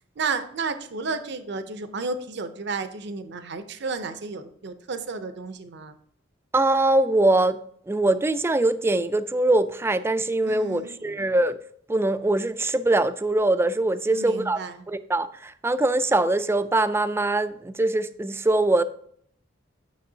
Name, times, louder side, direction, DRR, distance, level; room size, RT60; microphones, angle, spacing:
voice 1, 0.2-6.0 10.4-11.0 14.1-14.8, right 4 dB, 60° right, 10 dB, 0.6 m, -32 dB
voice 2, 6.5-7.6 7.9-11.6 11.9-14.6 14.9-18.8, right 2 dB, 15° right, 13 dB, 0.3 m, -22 dB
9.3 x 6.1 x 2.7 m, 0.64 s
head